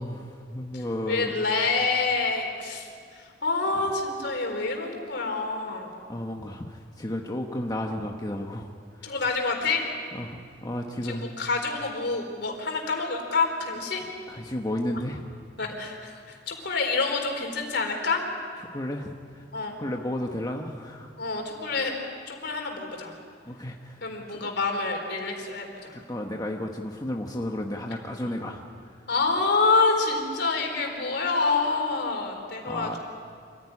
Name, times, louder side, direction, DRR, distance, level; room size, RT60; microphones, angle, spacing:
voice 1, 0.0-1.4 6.1-8.7 9.0-9.1 10.1-11.2 14.3-15.2 18.7-19.4 19.8-21.1 23.5-24.0 25.9-28.6 32.6-33.0, left 1 dB, 20° left, 1 dB, 1.2 m, -33 dB
voice 2, 0.7-2.9 3.2-5.9 9.0-9.8 11.0-14.0 15.6-18.2 19.5-19.8 21.2-21.9 22.3-23.1 24.0-25.9 29.1-33.0, left 3 dB, 65° left, 3 dB, 4.2 m, -27 dB
26.5 x 16.0 x 10.0 m, 2.2 s
head